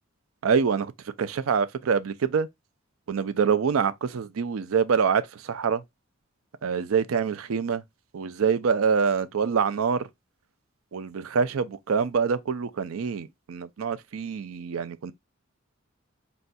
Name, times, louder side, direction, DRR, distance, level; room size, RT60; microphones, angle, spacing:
voice 1, 0.4-0.9 1.2-2.5 3.1-5.8 6.6-7.8 8.1-10.1 10.9-15.1, right 6 dB, 85° right, 0.5 m, -25 dB
4.3 x 4.0 x 2.2 m
head